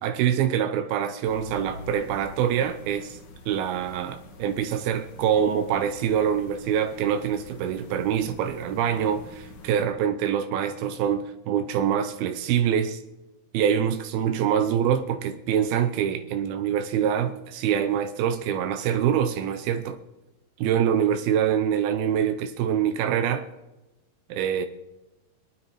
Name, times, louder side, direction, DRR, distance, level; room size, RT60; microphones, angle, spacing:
voice 1, 0.0-3.2 3.5-13.0 13.5-20.0 20.6-23.5 24.3-24.7, right 9 dB, 85° right, 2.7 m, -25 dB
sound 1, 1.2-9.9, left 3 dB, 80° left, 4.4 m, -46 dB
25.5 x 9.4 x 4.8 m
omnidirectional pair, 4.3 m